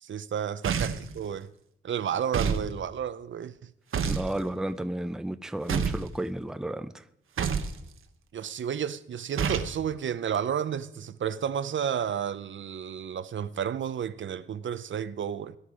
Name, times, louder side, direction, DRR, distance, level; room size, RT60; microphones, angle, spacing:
voice 1, 0.0-1.5 1.8-3.7 8.3-15.6, right 8 dB, 70° right, 0.7 m, -32 dB
sound 1, 0.6-1.1 2.3-2.7 3.9-4.3 5.7-6.1 7.4-7.7 9.4-9.7, right 6 dB, 85° right, 1.2 m, -28 dB
voice 2, 4.1-6.9, right 1 dB, 5° right, 0.5 m, -32 dB
18.5 x 11.5 x 4.9 m
wide cardioid pair, 160°, 21 cm